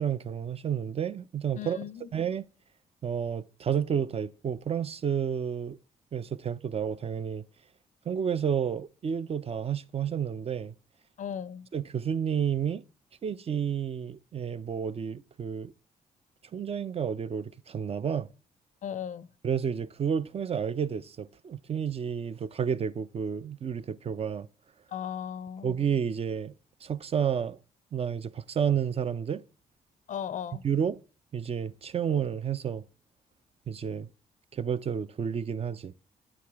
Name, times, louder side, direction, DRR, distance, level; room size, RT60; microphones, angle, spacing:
voice 1, 0.0-1.8 2.1-2.5 3.0-5.8 6.1-7.4 8.1-10.7 11.7-12.8 13.2-15.7 16.5-18.3 19.4-24.5 25.6-26.5 26.8-27.6 27.9-29.4 30.6-31.0 31.3-32.8 33.7-34.1 34.5-35.9, right 8 dB, 40° right, 0.4 m, -30 dB
voice 2, 1.6-2.1 11.2-11.7 18.8-19.3 24.9-25.7 30.1-30.6, left 9 dB, 55° left, 0.4 m, -36 dB
8.6 x 4.7 x 3.4 m
supercardioid pair, 60°, 16 cm